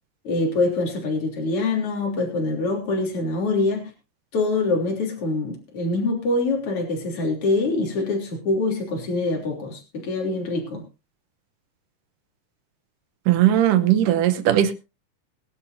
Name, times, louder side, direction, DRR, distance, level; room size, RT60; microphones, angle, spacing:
voice 1, 0.2-3.8 4.3-10.8, left 2 dB, 45° left, 0 dB, 4.1 m, -24 dB
voice 2, 13.3-14.7, right 12 dB, 80° right, 11 dB, 2.6 m, -18 dB
22.0 x 11.0 x 2.7 m, 0.27 s
omnidirectional pair, 3.8 m